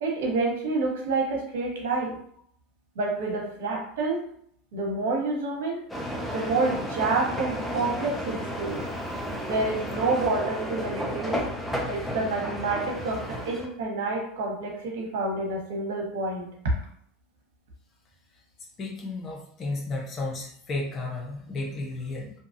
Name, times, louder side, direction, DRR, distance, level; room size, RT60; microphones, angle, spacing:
voice 1, 0.0-2.2 3.0-4.2 4.7-5.8 6.3-8.9 9.5-11.4 11.9-16.5, right 3 dB, 80° right, 0 dB, 0.9 m, -28 dB
sound 1, 5.9-13.7, equal, 5° left, 0.7 m, -33 dB
voice 2, 18.8-22.3, left 2 dB, 35° left, -1 dB, 0.9 m, -33 dB
2.7 x 2.3 x 2.5 m, 0.64 s
hypercardioid pair, 105°, 0 cm